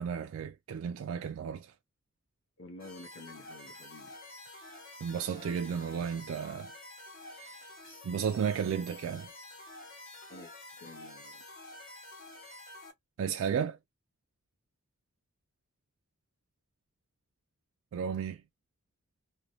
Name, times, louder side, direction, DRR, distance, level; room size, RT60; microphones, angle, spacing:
voice 1, 0.0-1.7 5.0-6.7 7.3-7.7 8.0-9.3 13.2-13.8 17.9-18.4, right 7 dB, 85° right, 0.3 m, -33 dB
voice 2, 2.6-4.2 10.3-10.5 10.8-11.4, left 2 dB, 75° left, 0.8 m, -50 dB
sound 1, 2.8-12.9, left 1 dB, 45° left, 1.3 m, -49 dB
3.0 x 2.2 x 2.6 m
head